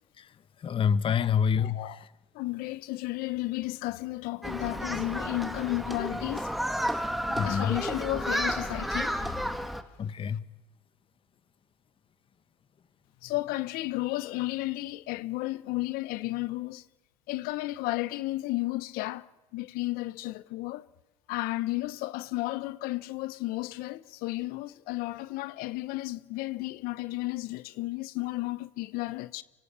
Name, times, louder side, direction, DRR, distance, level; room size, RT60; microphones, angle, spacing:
voice 1, 0.6-2.1 7.4-7.8 10.0-10.4, left 7 dB, 30° left, 1.1 m, -27 dB
voice 2, 1.6-2.0 2.3-6.5 6.8-6.9 7.3-9.4 13.2-16.8 17.3-19.2 19.5-20.8 21.3-29.4, left 19 dB, 65° left, 1.1 m, -33 dB
Human group actions, 4.4-9.8, equal, ahead, 2.2 m, -32 dB
24.5 x 21.5 x 8.8 m
supercardioid pair, 95°, 17 cm